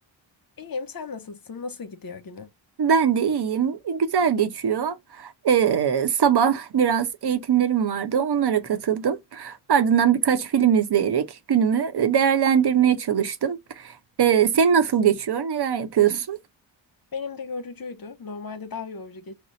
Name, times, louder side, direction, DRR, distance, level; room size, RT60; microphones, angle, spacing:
voice 1, 0.6-2.5 17.1-19.3, left 4 dB, 45° left, 1.0 m, -35 dB
voice 2, 2.8-16.4, right 8 dB, 55° right, 0.9 m, -22 dB
4.2 x 2.1 x 3.9 m
cardioid pair, 55°, 48 cm